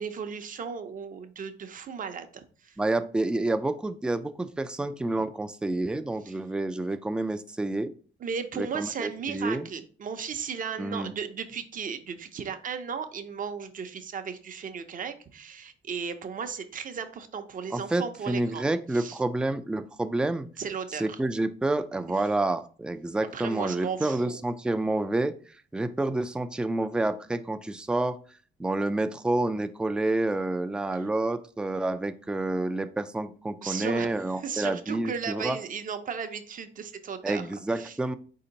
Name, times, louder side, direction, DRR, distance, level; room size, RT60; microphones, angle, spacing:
voice 1, 0.0-2.8 6.2-6.3 8.2-19.2 20.6-21.2 22.1-22.3 23.3-24.4 30.9-31.1 33.6-34.1 34.4-38.2, right 6 dB, 45° right, 9 dB, 0.6 m, -36 dB
voice 2, 2.8-7.9 8.5-9.7 10.8-11.1 17.7-20.5 20.9-25.3 25.7-28.2 28.6-35.6 37.2-38.2, right 2 dB, 5° right, 11 dB, 0.3 m, -29 dB
4.3 x 2.8 x 3.9 m, 0.41 s
cardioid pair, 90°, 20 cm